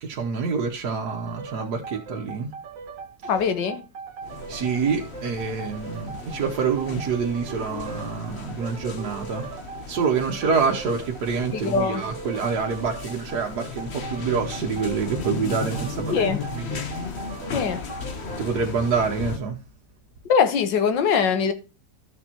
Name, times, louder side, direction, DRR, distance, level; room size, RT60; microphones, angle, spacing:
voice 1, 0.0-2.5 4.5-9.5 9.9-16.7 18.4-19.6, right 5 dB, 65° right, 1.5 m, -26 dB
sound 1, 1.1-18.5, right 5 dB, 90° right, 1.8 m, -40 dB
voice 2, 3.3-3.8 11.5-12.0 16.1-16.4 17.5-17.8 20.2-21.5, left 6 dB, 80° left, 1.7 m, -22 dB
sound 2, 4.2-19.4, left 5 dB, 45° left, 1.1 m, -36 dB
13.5 x 6.4 x 2.9 m
omnidirectional pair, 1.9 m